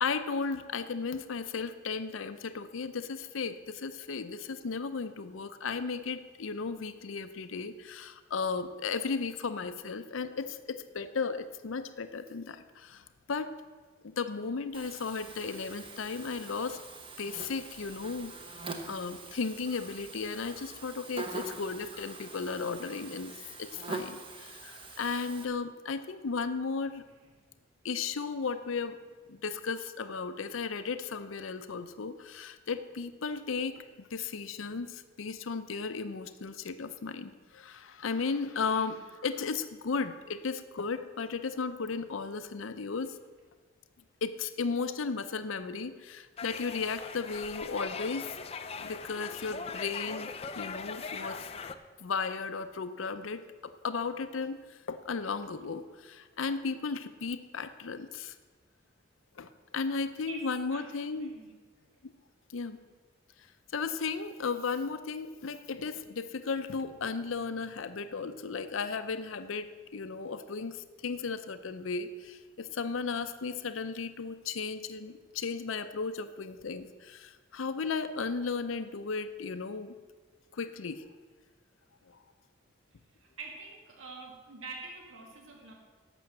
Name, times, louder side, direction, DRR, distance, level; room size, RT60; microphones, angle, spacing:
voice 1, 0.0-13.5 14.0-16.8 17.2-18.3 18.9-27.0 27.8-29.0 29.3-43.2 44.2-48.4 48.8-51.5 52.0-58.3 59.4-61.3 62.5-62.8 63.7-79.9 80.5-81.0 82.1-82.2, left 4 dB, 80° left, 10 dB, 0.6 m, -35 dB
Buzz, 14.7-25.4, right 3 dB, 25° right, 0.9 m, -44 dB
voice 2, 38.6-39.0 54.9-55.0 59.9-61.6 83.2-85.7, right 3 dB, 85° right, 0 dB, 2.0 m, -47 dB
sound 1, 46.4-51.7, left 5 dB, 30° left, 0.5 m, -40 dB
11.5 x 6.9 x 7.6 m, 1.4 s
head